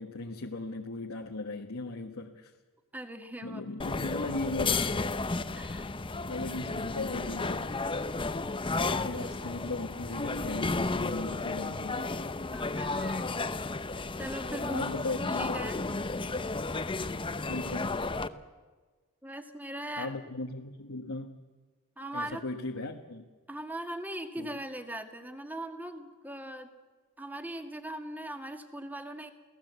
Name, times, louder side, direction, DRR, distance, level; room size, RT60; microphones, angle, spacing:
voice 1, 0.0-2.5 3.4-5.1 6.2-8.0 8.8-12.1 14.7-15.6 17.5-18.0 20.0-21.4 22.1-23.2 24.4-24.5, left 2 dB, 75° left, 2 dB, 1.4 m, -37 dB
voice 2, 2.9-3.6 5.5-5.9 8.9-9.1 12.5-13.3 14.0-14.9 15.3-15.8 19.2-20.2 22.0-22.4 23.5-26.7 27.2-29.3, right 1 dB, 10° right, 6 dB, 1.9 m, -40 dB
sound 1, 3.8-18.3, left 3 dB, 25° left, 0.8 m, -33 dB
29.5 x 17.5 x 8.1 m, 1.4 s
head